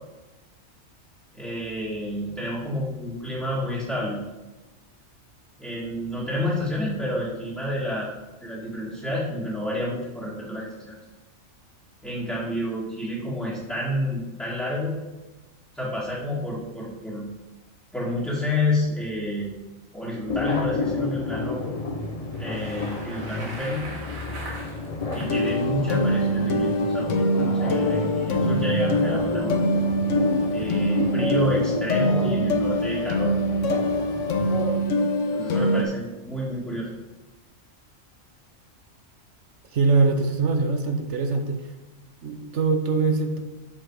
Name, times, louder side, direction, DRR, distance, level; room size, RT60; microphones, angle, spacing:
voice 1, 1.3-4.2 5.6-8.1 8.4-11.0 12.0-14.9 15.7-17.3 17.9-19.5 19.9-21.6 22.4-23.9 25.1-29.6 30.5-33.3 35.3-36.9, left 1 dB, ahead, -9 dB, 2.0 m, -29 dB
sound 1, 20.3-34.7, left 3 dB, 35° left, 0.8 m, -31 dB
Bicycle, 22.2-25.5, right 2 dB, 80° right, 2.2 m, -40 dB
sound 2, 25.2-35.8, equal, 65° left, 1.2 m, -24 dB
voice 2, 39.7-41.6 42.2-43.4, right 4 dB, 60° right, 6 dB, 1.2 m, -22 dB
7.7 x 6.7 x 4.8 m, 1.1 s
omnidirectional pair, 1.4 m